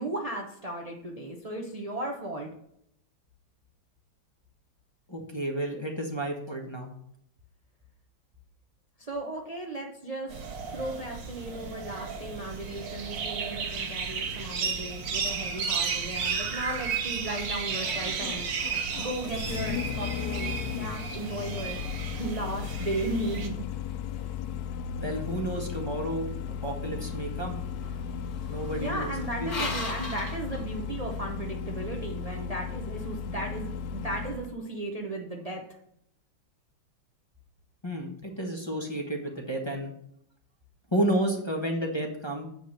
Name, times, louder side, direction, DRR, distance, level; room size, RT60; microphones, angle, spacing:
voice 1, 0.0-2.5 9.0-21.8 22.1-23.6 28.7-35.6, right 2 dB, 50° right, 0 dB, 0.4 m, -36 dB
voice 2, 5.1-6.9 11.6-11.7 25.0-26.3 26.6-27.6 28.5-29.1 29.4-29.7 37.8-39.9 40.9-42.5, right 1 dB, 15° left, 1 dB, 1.0 m, -31 dB
sound 1, 10.3-23.5, right 5 dB, 65° right, 1.8 m, -33 dB
Engine starting, 16.2-34.6, left 8 dB, 85° left, 0.8 m, -36 dB
sound 2, 26.9-31.3, left 2 dB, 45° left, 2.3 m, -39 dB
7.9 x 5.3 x 6.3 m, 0.72 s
omnidirectional pair, 2.2 m